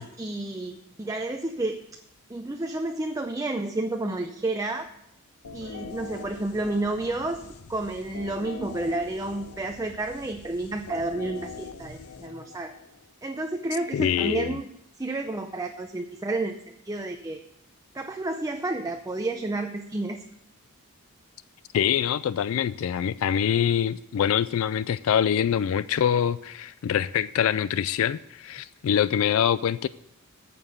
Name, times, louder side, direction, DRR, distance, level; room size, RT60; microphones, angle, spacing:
voice 1, 0.0-1.8 2.3-4.9 5.5-12.8 13.2-14.7 15.0-17.4 17.9-20.2, right 2 dB, 15° right, 5 dB, 0.5 m, -31 dB
sound 1, 5.4-13.1, left 5 dB, 90° left, 0.7 m, -43 dB
voice 2, 13.9-14.6 21.7-29.9, left 9 dB, 65° left, 16 dB, 0.3 m, -24 dB
9.1 x 6.9 x 8.0 m, 0.80 s
head